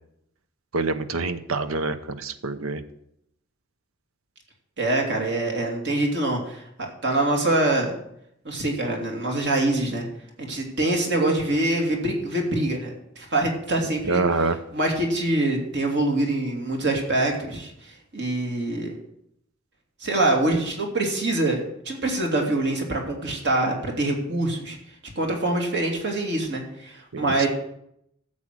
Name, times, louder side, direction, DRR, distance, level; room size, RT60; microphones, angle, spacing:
voice 1, 0.7-2.8 14.1-14.6 27.1-27.5, right 3 dB, 85° right, 12 dB, 0.8 m, -26 dB
voice 2, 4.8-7.9 8.4-10.1 10.4-18.9 20.0-24.8 25.0-27.5, right 2 dB, 60° right, 2 dB, 2.7 m, -25 dB
13.0 x 7.5 x 6.1 m, 0.76 s
head